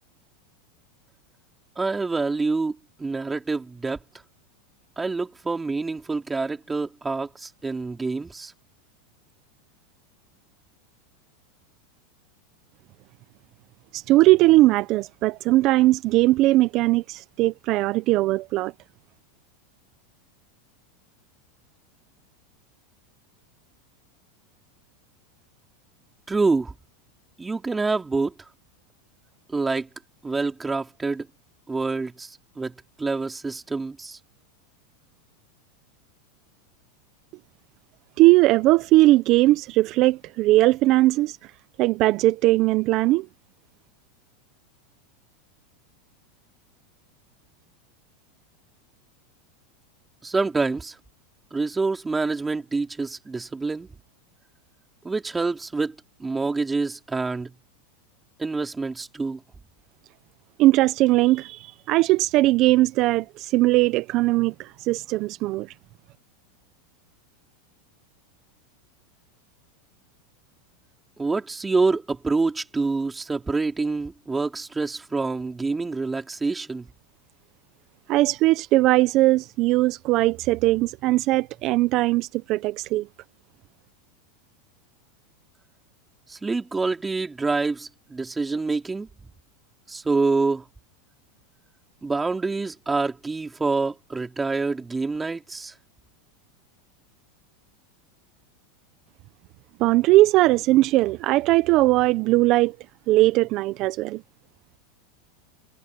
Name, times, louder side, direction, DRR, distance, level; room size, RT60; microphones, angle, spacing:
voice 1, 1.8-4.0 5.0-8.5 26.3-26.7 27.4-28.3 29.5-29.9 30.2-31.3 31.7-34.2 50.2-51.0 51.5-53.9 55.0-57.5 58.4-59.4 71.2-76.9 86.3-89.1 89.9-90.6 92.0-95.7, right 3 dB, 10° right, 3.9 m, -26 dB
voice 2, 13.9-18.7 38.2-41.4 41.8-43.3 60.6-65.7 78.1-83.1 99.8-102.7 103.1-104.2, right 18 dB, 50° right, 1.0 m, -19 dB
supercardioid pair, 120°, 0 cm